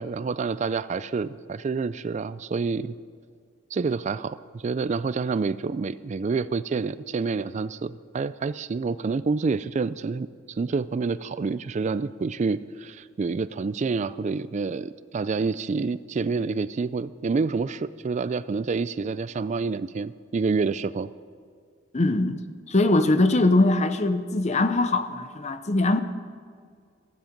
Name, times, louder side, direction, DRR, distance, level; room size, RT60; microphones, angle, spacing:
voice 1, 0.0-2.9 3.7-21.1, right 4 dB, 35° right, 15 dB, 0.3 m, -28 dB
voice 2, 21.9-22.4 22.7-26.0, left 2 dB, 35° left, 10 dB, 0.7 m, -21 dB
15.0 x 13.0 x 5.2 m, 2.1 s
head